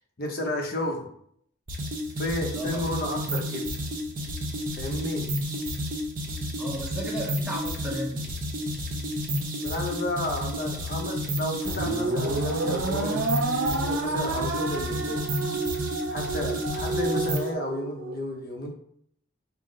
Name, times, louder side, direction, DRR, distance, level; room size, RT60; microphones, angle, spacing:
voice 1, 0.2-1.1 2.2-3.7 4.7-5.3 9.6-13.2 13.7-15.2 16.1-18.7, left 1 dB, 45° left, 2 dB, 0.7 m, -32 dB
sound 1, 1.7-17.5, equal, 40° right, 0.7 m, -31 dB
voice 2, 2.5-2.9 6.6-8.3, right 1 dB, 5° right, -3 dB, 0.6 m, -34 dB
sound 2, 11.7-18.2, right 3 dB, 80° right, 0.5 m, -30 dB
5.6 x 2.0 x 3.7 m, 0.65 s
head